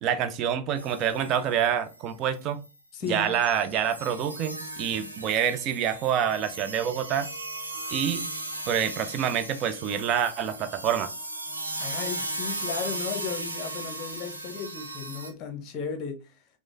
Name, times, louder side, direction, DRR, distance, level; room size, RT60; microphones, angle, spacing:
voice 1, 0.0-2.6 3.1-7.3 7.9-8.3 8.7-11.1, right 9 dB, 35° right, 0.4 m, -27 dB
sound 1, 0.8-1.6 1.9-2.0 2.3-2.7 3.1-15.3, right 1 dB, 85° right, 0.7 m, -37 dB
voice 2, 2.9-3.3 11.8-16.2, left 6 dB, 35° left, 0.8 m, -35 dB
4.6 x 2.1 x 2.6 m
figure-of-eight pair, 90°, 0 cm